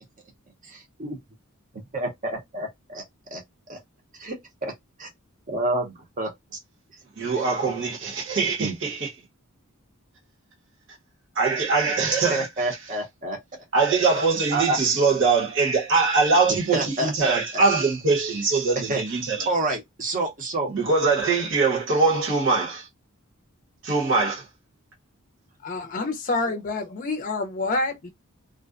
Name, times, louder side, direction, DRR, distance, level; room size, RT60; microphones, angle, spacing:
voice 1, 0.6-1.2 1.9-3.0 3.3-3.4 3.7-3.8 4.1-4.7 5.0-5.1 5.5-6.6 7.4-7.5 8.6-8.7 12.3-13.4 14.5-14.8 16.5-17.6 18.9-19.0 19.5-20.7, right 2 dB, 35° right, 0.8 m, -28 dB
voice 2, 7.2-9.1 11.3-12.5 13.7-19.5 20.7-22.9 23.8-24.4, right 4 dB, 60° right, 1.0 m, -22 dB
voice 3, 25.6-28.1, left 2 dB, 40° left, 0.5 m, -27 dB
2.5 x 2.1 x 2.4 m
head